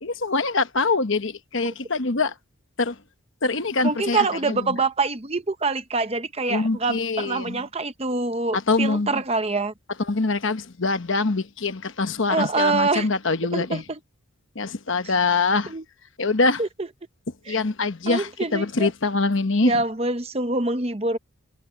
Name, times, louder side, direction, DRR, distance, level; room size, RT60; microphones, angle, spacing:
voice 1, 0.0-2.3 2.8-3.0 3.4-4.8 6.5-7.6 8.5-9.2 10.1-13.8 14.5-15.7 16.2-16.6 17.5-19.7, left 3 dB, 55° left, 1.1 m, -24 dB
voice 2, 3.8-9.7 12.3-13.1 13.5-14.0 15.7-15.8 16.6-16.9 17.5-17.6 18.1-18.9 19.6-21.2, right 3 dB, 25° right, 0.8 m, -25 dB
head